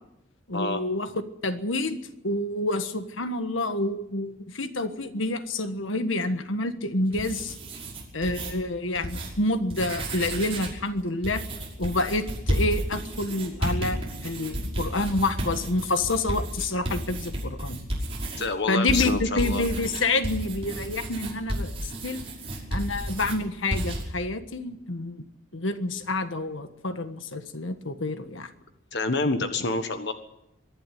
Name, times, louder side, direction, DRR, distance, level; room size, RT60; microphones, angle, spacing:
voice 1, 0.5-1.1 1.4-2.0 2.2-7.6 8.1-11.4 11.8-17.9 18.7-22.2 22.7-25.2 25.5-28.5, left 2 dB, 75° left, 9 dB, 1.5 m, -28 dB
sound 1, 7.0-8.5 8.9-9.3 9.6-10.8 11.2-18.5 18.9-23.4 23.7-24.0, right 1 dB, 30° right, 5.9 m, -32 dB
voice 2, 18.4-19.7 28.9-30.1, left 3 dB, 55° left, 8 dB, 1.4 m, -28 dB
23.5 x 12.0 x 10.0 m, 0.88 s
head